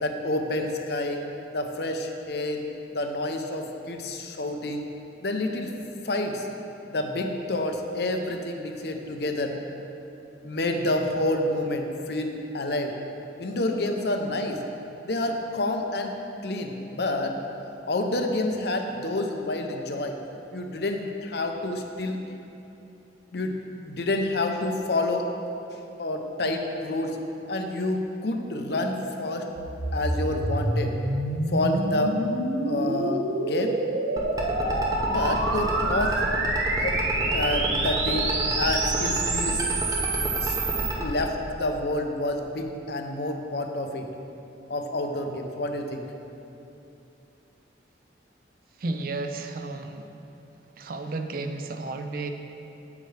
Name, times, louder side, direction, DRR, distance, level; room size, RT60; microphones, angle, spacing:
voice 1, 0.0-1.2 1.5-2.6 2.9-4.8 5.2-5.7 6.0-6.5 6.9-9.5 10.4-12.9 13.4-14.6 15.0-16.1 16.4-17.3 17.9-20.2 20.5-22.2 23.3-23.6 23.8-25.3 26.0-27.2 27.5-29.5 29.9-30.9 31.5-32.2 32.7-33.7 35.1-36.2 36.8-39.6 40.4-40.5 41.0-44.1 44.7-46.0, left 2 dB, 60° left, 4 dB, 0.6 m, -28 dB
sound 1, 29.6-40.9, right 2 dB, 80° right, 0.8 m, -27 dB
sound 2, 34.2-41.1, right 1 dB, 20° right, 0.7 m, -30 dB
voice 2, 48.8-50.1 50.8-52.3, right 3 dB, 50° right, 6 dB, 0.4 m, -32 dB
8.3 x 8.0 x 3.3 m, 2.8 s
head